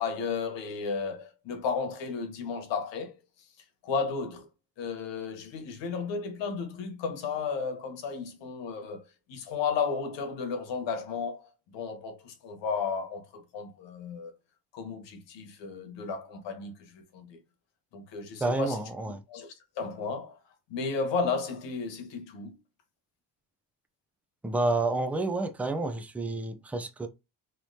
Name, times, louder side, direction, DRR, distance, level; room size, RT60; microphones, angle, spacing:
voice 1, 0.0-3.5 3.8-4.5 4.8-9.0 9.3-14.3 14.7-17.4 17.9-20.4 20.7-22.6, left 5 dB, 65° left, 1.3 m, -34 dB
voice 2, 18.4-19.2 24.4-27.1, right 2 dB, 5° right, 0.4 m, -29 dB
3.3 x 3.0 x 2.7 m
supercardioid pair, 85°, 47 cm